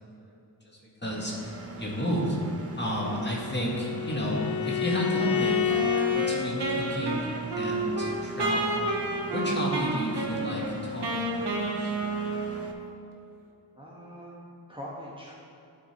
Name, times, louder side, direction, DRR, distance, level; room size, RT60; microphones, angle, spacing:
voice 1, 0.6-2.4 2.8-5.7 6.1-8.8 9.3-11.9, equal, 25° left, -4 dB, 2.0 m, -32 dB
Engine, 1.0-12.7, right 3 dB, 35° right, 0.9 m, -42 dB
Bowed string instrument, 2.9-6.4, left 10 dB, 40° left, 1.0 m, -29 dB
Wind instrument woodwind instrument, 5.2-12.9, right 2 dB, 70° right, 1.2 m, -30 dB
voice 2, 13.8-15.3, equal, 10° right, -5 dB, 1.2 m, -43 dB
11.5 x 4.4 x 4.4 m, 2.8 s
cardioid pair, 55°, 44 cm